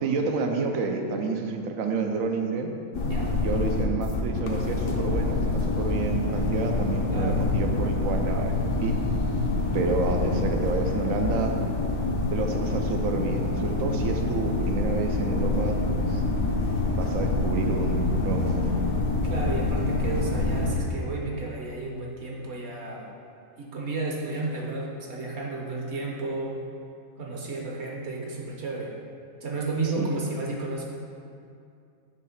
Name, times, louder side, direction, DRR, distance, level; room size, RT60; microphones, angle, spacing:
voice 1, 0.0-2.7 3.4-8.5 8.8-9.0 9.7-11.6 12.3-15.8 16.1-16.2 16.9-18.8 30.0-30.1, right 4 dB, 75° right, 4 dB, 1.0 m, -29 dB
sound 1, 2.9-20.7, left 2 dB, 70° left, 1.1 m, -26 dB
voice 2, 7.1-7.4 19.2-23.1 23.6-26.6 27.2-28.9 29.4-30.9, right 3 dB, 55° right, -2 dB, 1.0 m, -32 dB
7.1 x 3.1 x 5.7 m, 2.4 s
omnidirectional pair, 1.5 m